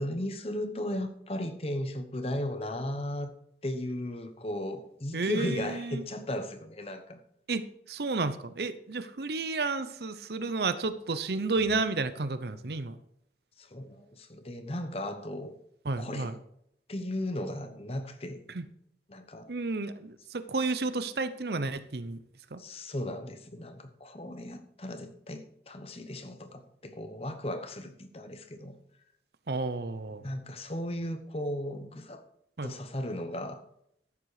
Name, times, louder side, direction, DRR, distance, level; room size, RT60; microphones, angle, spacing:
voice 1, 0.0-3.3 3.6-7.2 13.6-15.5 16.0-16.3 16.9-18.4 19.1-19.5 22.6-28.8 30.2-32.2 32.6-33.6, left 1 dB, 35° left, 1.0 m, -36 dB
voice 2, 5.1-6.0 7.5-13.0 15.8-16.4 18.5-18.6 19.5-22.2 22.5-22.6 29.5-30.2 32.6-32.7, right 3 dB, 65° right, 0.7 m, -31 dB
13.5 x 7.6 x 4.9 m
head